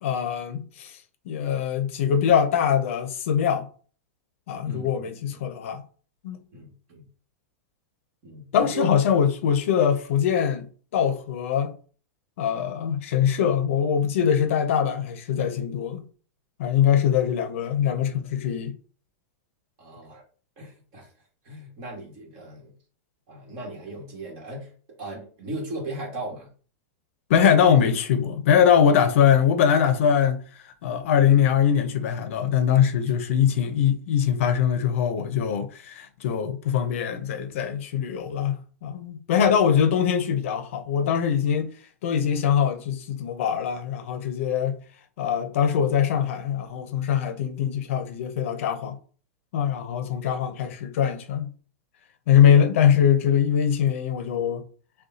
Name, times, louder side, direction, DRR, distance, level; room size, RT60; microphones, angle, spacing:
voice 1, 0.0-1.0 1.3-3.7 4.5-5.8 6.2-6.4 8.5-11.7 12.4-16.0 16.6-18.7 27.3-41.7 42.0-44.8 45.2-49.0 49.5-51.5 52.3-54.6, left 8 dB, 60° left, 0.7 m, -22 dB
voice 2, 6.5-7.1 8.2-8.9 19.8-20.2 20.6-21.1 21.4-22.7 23.3-24.7 25.0-26.5, right 2 dB, 35° right, 1.7 m, -37 dB
6.5 x 2.3 x 2.7 m
supercardioid pair, 170°, 8 cm